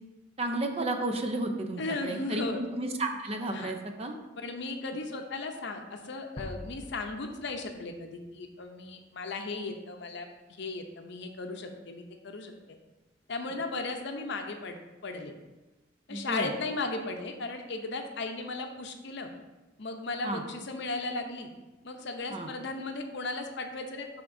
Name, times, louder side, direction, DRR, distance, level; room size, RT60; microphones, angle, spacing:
voice 1, 0.4-4.2 16.1-16.5 20.2-20.4 22.3-22.5, right 2 dB, 30° right, 5 dB, 0.5 m, -32 dB
voice 2, 1.8-2.6 3.5-3.7 4.4-10.3 10.6-12.5 13.3-14.8 15.0-15.3 16.1-19.3 19.8-21.5 21.8-24.1, left 3 dB, 65° left, 5 dB, 0.6 m, -36 dB
sound 1, 6.4-9.2, left 1 dB, 25° left, 0.4 m, -46 dB
10.5 x 3.6 x 2.6 m, 1.1 s
head